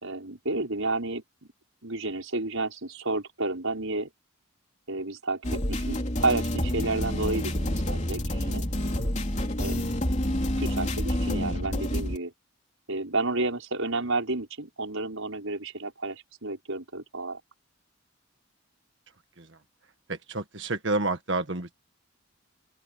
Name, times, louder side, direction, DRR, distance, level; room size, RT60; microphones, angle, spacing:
voice 1, 0.0-1.2 1.8-4.1 4.9-8.7 9.6-9.9 10.6-12.3 12.9-17.4, right 2 dB, 80° right, 5.4 m, -31 dB
sound 1, 5.4-12.2, left 1 dB, 35° left, 3.5 m, -28 dB
voice 2, 20.1-21.7, right 2 dB, 60° right, 1.7 m, -30 dB
open air
head